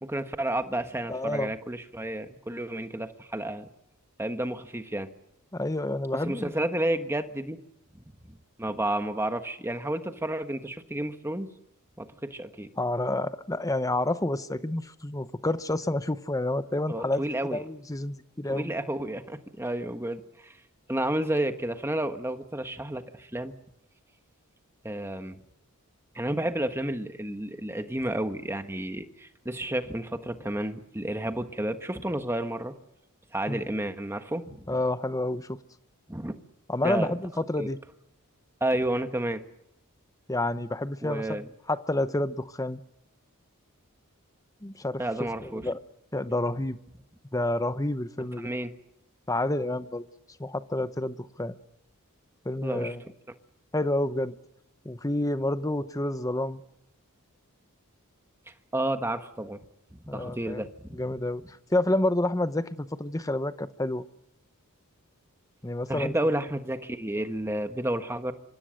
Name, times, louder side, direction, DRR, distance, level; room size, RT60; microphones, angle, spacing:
voice 1, 0.0-3.7 4.2-5.1 6.2-7.6 8.6-11.5 12.0-12.7 16.9-17.6 18.5-20.6 20.9-23.5 24.8-25.4 26.1-32.7 33.3-34.7 36.1-36.3 36.8-37.1 37.6-37.7 38.6-39.4 41.0-41.5 45.0-45.7 48.4-48.7 52.6-52.9 58.7-59.6 59.9-61.0 65.9-68.3, right 1 dB, 10° right, 1.4 m, -31 dB
voice 2, 1.1-1.5 5.5-6.5 12.8-17.2 17.5-18.7 33.5-33.6 34.7-35.6 36.7-37.8 40.3-42.8 44.6-45.0 45.4-45.8 46.1-46.8 47.3-48.5 49.3-50.0 50.4-51.5 52.4-53.0 53.7-54.3 54.8-56.6 60.1-60.6 60.9-64.0 65.6-66.1, left 1 dB, 15° left, 0.9 m, -29 dB
25.5 x 25.5 x 6.5 m
head